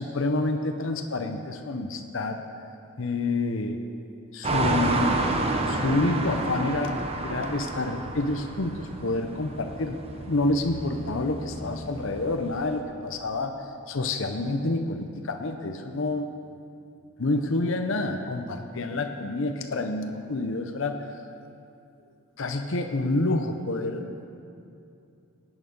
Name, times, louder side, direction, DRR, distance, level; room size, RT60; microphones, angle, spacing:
voice 1, 0.0-2.4 3.0-3.8 4.3-5.2 5.5-7.0 7.2-13.5 13.9-16.3 17.2-21.1 22.4-24.0, left 2 dB, 65° left, 5 dB, 0.7 m, -28 dB
sound 1, 4.4-12.8, right 2 dB, 30° right, 0.9 m, -30 dB
16.5 x 9.1 x 5.3 m, 2.6 s
head